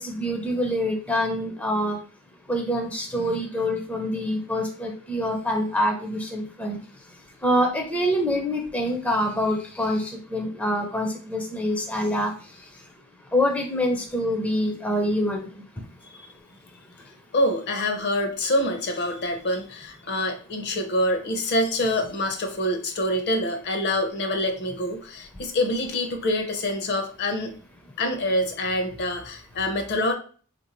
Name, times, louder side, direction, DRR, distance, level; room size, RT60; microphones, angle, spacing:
voice 1, 0.0-2.0 2.5-6.8 7.4-12.3 13.3-15.5, equal, 5° left, 1 dB, 0.4 m, -25 dB
voice 2, 17.3-27.5 28.0-30.1, left 1 dB, 50° left, 5 dB, 0.6 m, -26 dB
3.6 x 2.6 x 2.9 m, 0.41 s
head